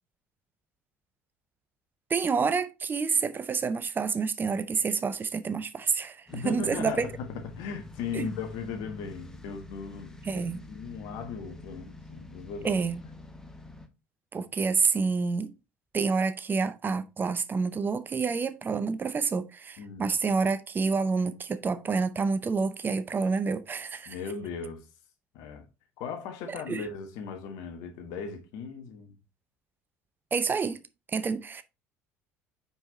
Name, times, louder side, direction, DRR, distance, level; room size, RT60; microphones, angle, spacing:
voice 1, 2.1-7.1 8.1-8.3 10.3-10.6 12.6-13.0 14.3-15.5 15.9-24.1 26.7-26.8 30.3-30.8 31.1-31.6, right 5 dB, 30° right, 0.7 m, -28 dB
voice 2, 6.3-12.8 19.8-20.1 24.0-24.9 25.3-25.7 26.0-29.2, left 5 dB, 65° left, 1.4 m, -38 dB
sound 1, 6.3-13.9, left 2 dB, 5° left, 1.2 m, -47 dB
5.4 x 4.7 x 4.0 m
hypercardioid pair, 65°, 7 cm